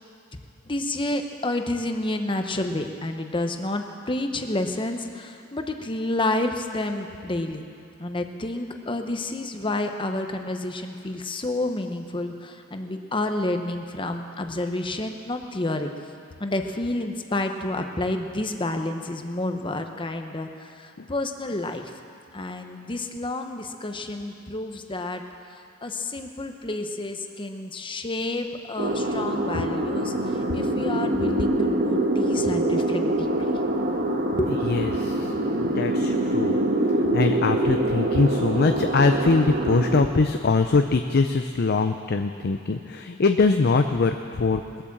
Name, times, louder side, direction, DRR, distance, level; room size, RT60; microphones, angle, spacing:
voice 1, 0.7-7.6 8.0-15.9 16.4-21.9 22.3-25.2 25.5-33.5 34.4-34.5, left 2 dB, 25° left, 5 dB, 0.9 m, -29 dB
sound 1, 28.8-40.1, right 1 dB, 45° right, 1.3 m, -24 dB
voice 2, 34.7-36.6 37.1-44.8, left 3 dB, 50° left, 6 dB, 0.5 m, -23 dB
21.0 x 8.6 x 7.3 m, 2.6 s
head